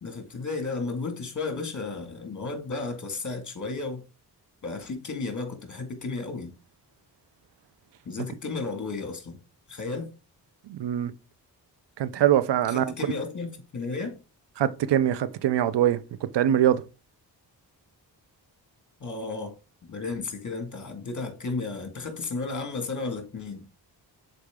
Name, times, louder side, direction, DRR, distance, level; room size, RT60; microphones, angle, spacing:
voice 1, 0.0-4.0 4.6-6.5 8.1-9.4 9.7-10.1 12.7-14.2 19.0-19.5 19.9-23.6, left 3 dB, 45° left, 2.0 m, -33 dB
voice 2, 10.7-11.1 12.0-12.9 14.6-16.8, right 11 dB, 80° right, 0.7 m, -23 dB
6.7 x 4.5 x 3.6 m
cardioid pair, 60°, 42 cm